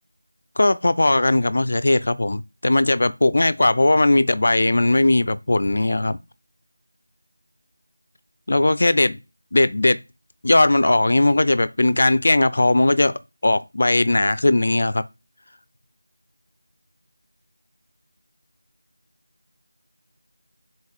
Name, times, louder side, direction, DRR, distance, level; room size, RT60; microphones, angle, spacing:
voice 1, 0.6-6.2 8.5-9.2 9.5-10.0 10.4-15.0, left 2 dB, 50° left, 0.4 m, -18 dB
6.9 x 4.1 x 5.0 m
figure-of-eight pair, 170°, 0 cm